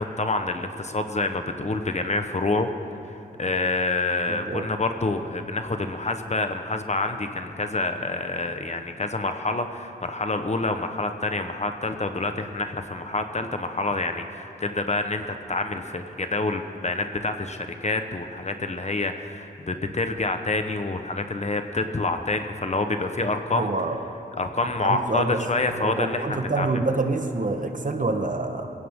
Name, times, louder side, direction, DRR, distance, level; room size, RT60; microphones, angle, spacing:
voice 1, 0.0-2.7 3.4-23.7 24.4-26.8, left 2 dB, 40° left, 7 dB, 1.1 m, -27 dB
voice 2, 4.3-4.7 23.5-24.0 24.8-25.4 25.8-28.7, right 3 dB, 50° right, 5 dB, 1.3 m, -27 dB
22.0 x 16.5 x 3.8 m, 2.8 s
cardioid pair, 55°, 17 cm